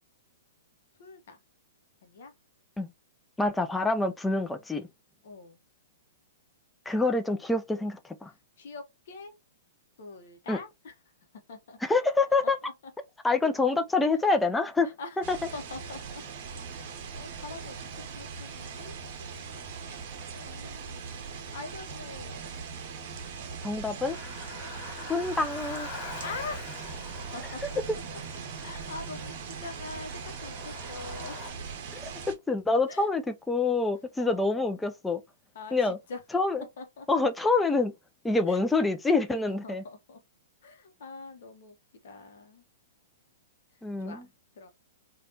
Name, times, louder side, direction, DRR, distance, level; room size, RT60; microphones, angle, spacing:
voice 1, 1.0-1.4 2.0-2.3 5.2-5.6 8.3-9.3 10.0-10.9 11.5-11.8 12.6-12.7 14.2-14.3 14.8-15.3 15.5-16.2 17.1-19.0 20.3-21.0 21.5-22.5 24.5-24.9 26.0-26.8 27.3-28.0 28.6-31.3 32.9-33.1 34.2-34.8 35.5-36.2 36.8-37.1 38.5-38.6 39.6-40.2 40.6-41.8 42.0-42.6 44.0-44.7, left 4 dB, 60° left, 0.7 m, -44 dB
voice 2, 3.4-4.9 6.9-8.3 10.5-10.6 11.8-12.6 13.2-14.9 15.3-15.4 23.6-24.2 25.1-25.9 32.3-35.2 35.7-36.0 36.3-36.6 37.1-37.9 38.2-39.8 43.8-44.2, left 3 dB, 5° left, 0.4 m, -26 dB
sound 1, 15.2-32.3, right 5 dB, 50° right, 0.7 m, -40 dB
Car, 24.0-31.5, left 3 dB, 30° left, 2.0 m, -44 dB
3.3 x 2.2 x 2.7 m
figure-of-eight pair, 110°, 0 cm